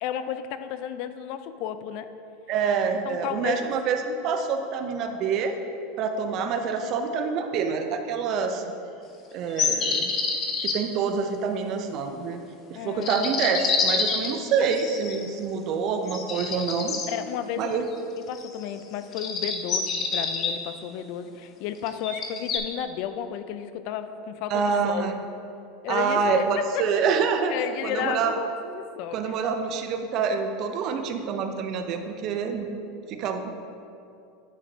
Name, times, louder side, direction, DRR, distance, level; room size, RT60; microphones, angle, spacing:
voice 1, 0.0-2.1 3.1-3.7 12.7-13.7 17.1-17.8 18.1-25.1 25.8-26.8 27.5-29.3, left 9 dB, 60° left, 10 dB, 0.4 m, -33 dB
voice 2, 2.5-5.6 6.0-8.6 9.3-10.1 10.6-12.4 12.7-17.0 17.6-17.8 24.5-25.2 25.9-27.5 27.8-28.4 29.1-32.7 33.1-33.5, right 6 dB, 50° right, 6 dB, 0.6 m, -26 dB
sound 1, 9.6-10.8 13.0-15.3 16.1-17.1 18.3-18.7 19.1-20.5 21.9-22.6, left 5 dB, 40° left, 0.7 m, -27 dB
9.5 x 5.2 x 2.8 m, 2.6 s
supercardioid pair, 110°, 0 cm